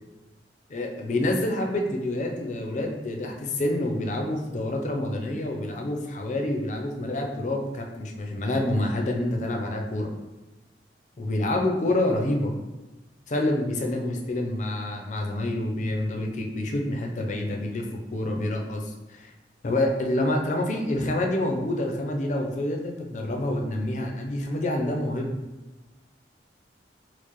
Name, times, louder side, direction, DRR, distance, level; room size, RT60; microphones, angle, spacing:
voice 1, 0.7-10.1 11.2-12.5 13.3-19.3 19.6-25.3, left 1 dB, 40° left, 2 dB, 0.4 m, -27 dB
4.5 x 2.0 x 3.0 m, 1.1 s
head